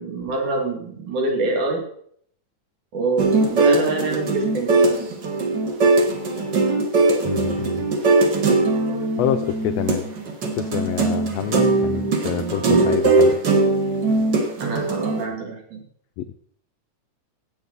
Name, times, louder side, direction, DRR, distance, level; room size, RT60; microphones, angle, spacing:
voice 1, 0.0-1.8 2.9-5.0 14.6-15.8, right 3 dB, 75° right, 0 dB, 3.8 m, -26 dB
sound 1, 3.2-15.2, right 3 dB, 50° right, 1.5 m, -20 dB
voice 2, 7.2-7.9 9.2-10.1 10.5-13.4 16.2-16.3, left 11 dB, 85° left, 9 dB, 1.4 m, -27 dB
16.5 x 7.4 x 4.0 m, 0.64 s
omnidirectional pair, 3.5 m